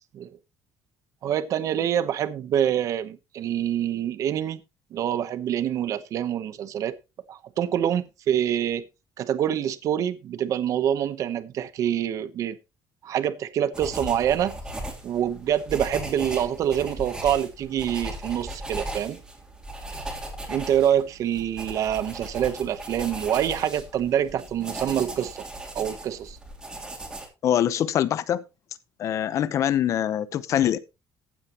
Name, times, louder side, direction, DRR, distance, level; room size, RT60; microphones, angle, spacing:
voice 1, 1.2-4.6 4.9-6.9 7.3-8.8 9.2-12.6 13.0-14.6 15.0-19.2 20.5-25.5 25.7-26.4, right 10 dB, 45° right, 0.9 m, -26 dB
sound 1, 13.7-27.3, right 1 dB, 10° right, 3.0 m, -37 dB
voice 2, 27.4-28.4 29.0-30.8, left 10 dB, 45° left, 0.8 m, -24 dB
15.0 x 9.2 x 2.9 m
cardioid pair, 180°, 7 cm